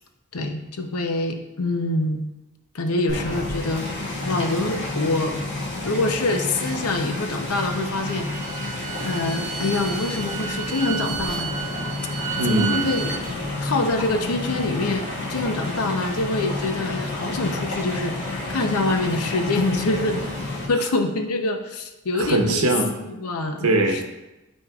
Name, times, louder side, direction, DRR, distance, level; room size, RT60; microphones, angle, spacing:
voice 1, 0.3-2.2 2.7-3.9 4.3-5.4 5.8-8.3 9.0-11.5 12.4-13.2 13.6-20.3 20.7-22.6 23.0-24.0, left 2 dB, 80° left, 5 dB, 0.7 m, -25 dB
sound 1, 3.1-20.7, left 2 dB, 60° left, 1.6 m, -30 dB
Bowed string instrument, 7.9-13.2, right 8 dB, 35° right, 0.6 m, -32 dB
voice 2, 12.4-12.8 22.1-22.9 23.6-24.0, right 2 dB, 85° right, 3 dB, 0.9 m, -21 dB
12.0 x 4.4 x 2.4 m, 1.0 s
head